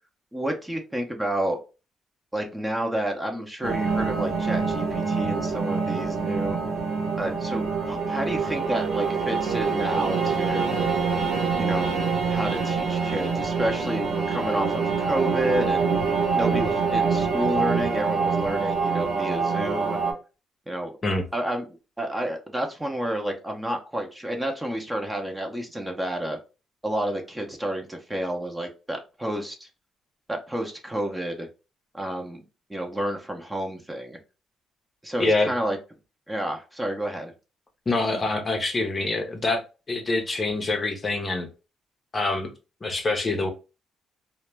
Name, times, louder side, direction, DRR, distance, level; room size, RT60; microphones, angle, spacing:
voice 1, 0.3-1.6 2.3-6.6 7.1-10.8 11.6-12.0 12.3-15.9 16.3-20.0 20.7-20.9 21.3-26.4 26.8-29.7 30.3-31.5 31.9-32.4 32.7-34.2 35.0-35.8 36.3-37.3, right 1 dB, 10° right, 0.6 m, -30 dB
sound 1, 3.6-20.1, right 5 dB, 90° right, 0.9 m, -25 dB
voice 2, 35.2-35.5 37.9-39.6 39.9-41.5 42.1-42.5 42.8-43.5, left 2 dB, 30° left, 0.6 m, -25 dB
2.1 x 2.0 x 3.2 m
cardioid pair, 90°, 0 cm